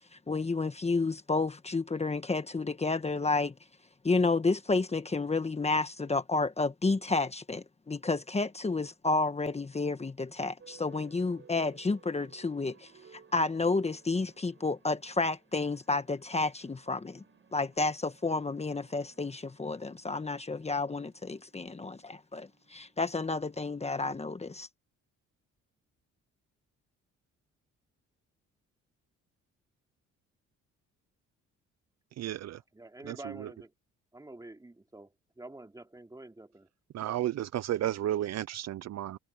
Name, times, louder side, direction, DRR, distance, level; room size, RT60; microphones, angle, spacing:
voice 1, 0.1-3.5 4.0-17.2 17.5-24.7, left 3 dB, 20° left, 1.3 m, -31 dB
sound 1, 10.6-24.0, right 6 dB, 40° right, 6.8 m, -60 dB
voice 2, 32.2-32.6 33.0-33.5 36.9-39.2, right 12 dB, 60° right, 0.6 m, -33 dB
voice 3, 32.7-33.7 34.1-36.7, right 2 dB, 10° right, 3.0 m, -48 dB
cardioid pair, 90°, 30 cm